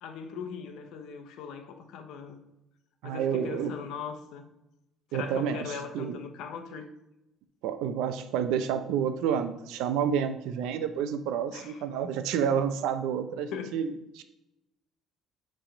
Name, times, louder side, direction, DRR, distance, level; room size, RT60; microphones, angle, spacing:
voice 1, 0.0-2.4 3.0-4.5 5.1-6.9 11.5-11.8 13.5-13.8, left 6 dB, 65° left, 0.8 m, -40 dB
voice 2, 3.0-3.7 5.1-6.2 7.6-14.0, right 8 dB, 80° right, 0.6 m, -29 dB
7.5 x 3.4 x 5.1 m
cardioid pair, 165°, 0 cm